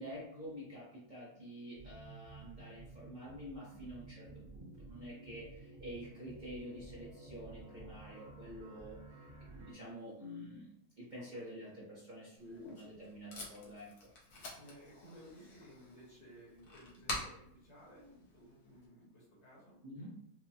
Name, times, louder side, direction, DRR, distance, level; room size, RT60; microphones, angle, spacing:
voice 1, 0.0-5.4 5.8-9.0 9.5-10.7 11.0-13.9 19.8-20.1, equal, 40° right, -8 dB, 0.8 m, -48 dB
sound 1, 1.7-9.7, right 3 dB, 60° right, 1.9 m, -53 dB
voice 2, 11.2-11.7 12.4-12.8 14.5-19.8, equal, 50° left, -5 dB, 1.5 m, -58 dB
Packing tape duct tape, 12.4-18.9, left 2 dB, 65° left, 1.3 m, -48 dB
4.7 x 2.2 x 2.8 m, 0.75 s
omnidirectional pair, 1.6 m